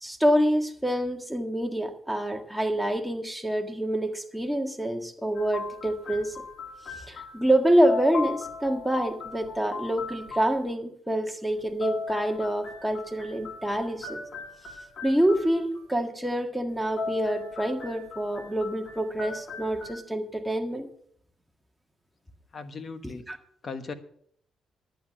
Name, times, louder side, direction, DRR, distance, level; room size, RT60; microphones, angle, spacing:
voice 1, 0.0-6.3 7.0-14.2 15.0-20.9 23.3-23.4, right 1 dB, 5° right, 4 dB, 1.7 m, -26 dB
sound 1, 5.3-7.6 7.8-10.6 11.6-15.8 16.7-19.9, left 4 dB, 60° left, 2.8 m, -37 dB
voice 2, 22.5-23.2 23.6-23.9, left 4 dB, 45° left, 10 dB, 1.3 m, -37 dB
11.0 x 9.3 x 6.2 m, 0.65 s
cardioid pair, 90°, 0 cm